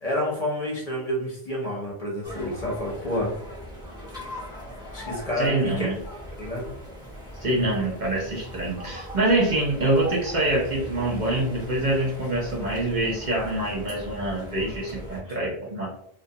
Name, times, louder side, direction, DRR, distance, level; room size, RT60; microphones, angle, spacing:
voice 1, 0.0-3.3 4.9-5.9 6.3-6.7 15.3-15.5, equal, 45° left, -4 dB, 0.6 m, -29 dB
sound 1, 2.2-15.2, left 1 dB, 5° right, 0.7 m, -40 dB
voice 2, 5.4-5.9 7.4-15.9, right 1 dB, 55° right, -3 dB, 0.6 m, -25 dB
2.3 x 2.2 x 2.7 m, 0.69 s
omnidirectional pair, 1.1 m